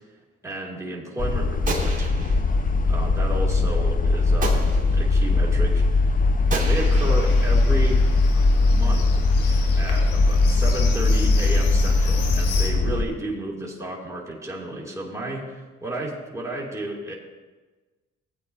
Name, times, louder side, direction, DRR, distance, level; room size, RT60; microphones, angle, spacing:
voice 1, 0.4-2.1 2.9-4.6 4.9-6.3 6.5-8.1 8.7-9.2 9.8-17.1, right 1 dB, 10° right, -3 dB, 2.7 m, -32 dB
sound 1, 1.2-13.0, left 3 dB, 30° left, 0.6 m, -20 dB
Gunshot gunfire, 1.7-2.8 4.4-5.2 6.5-8.2, right 3 dB, 25° right, 2.5 m, -33 dB
Livestock farm animals working animals, 6.7-12.7, left 5 dB, 90° left, 1.3 m, -36 dB
15.5 x 8.7 x 2.8 m, 1.3 s
cardioid pair, 80°, 30 cm